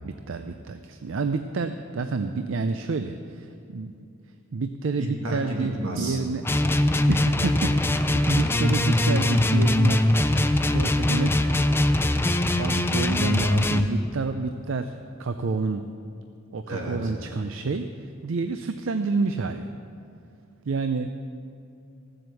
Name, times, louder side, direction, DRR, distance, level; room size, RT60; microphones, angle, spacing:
voice 1, 0.0-3.9 4.5-6.4 7.1-10.0 10.5-11.4 12.6-15.9 16.5-17.9 18.2-19.7 20.6-21.1, right 4 dB, 70° right, 8 dB, 0.5 m, -29 dB
voice 2, 5.0-6.2 16.7-17.1, right 1 dB, 85° right, 0 dB, 2.3 m, -31 dB
sound 1, 6.4-13.9, left 1 dB, 10° left, 0.4 m, -22 dB
15.0 x 7.7 x 7.0 m, 2.5 s
head